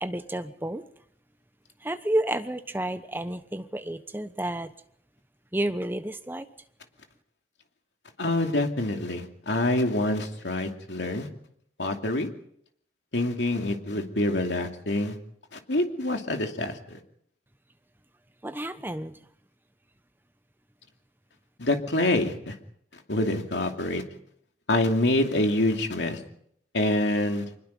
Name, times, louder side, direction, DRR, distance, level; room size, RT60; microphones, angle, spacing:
voice 1, 0.0-0.8 1.8-4.7 5.5-6.5 18.4-19.2, right 1 dB, 10° right, 10 dB, 1.0 m, -30 dB
voice 2, 8.2-11.3 11.8-12.3 13.1-15.2 15.5-17.0 21.6-22.6 23.1-24.0 24.7-26.2 26.7-27.5, left 1 dB, 90° left, 4 dB, 2.7 m, -26 dB
25.5 x 21.0 x 5.5 m, 0.69 s
head